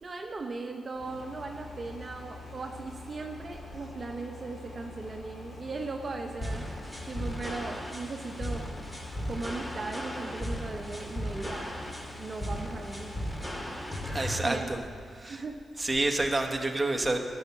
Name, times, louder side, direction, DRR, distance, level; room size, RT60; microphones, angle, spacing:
voice 1, 0.0-6.7 7.1-8.7 9.3-11.7 12.2-13.2 14.4-14.8 15.3-15.6, right 3 dB, 45° right, 3 dB, 0.9 m, -38 dB
sound 1, 1.0-13.6, left 2 dB, 50° left, 3.7 m, -46 dB
sound 2, 6.4-14.4, equal, 20° left, 2.0 m, -36 dB
voice 2, 14.1-14.8 15.1-15.4 15.8-17.2, right 2 dB, 20° right, 4 dB, 1.2 m, -28 dB
12.0 x 7.3 x 6.8 m, 2.2 s
cardioid pair, 60°, 0 cm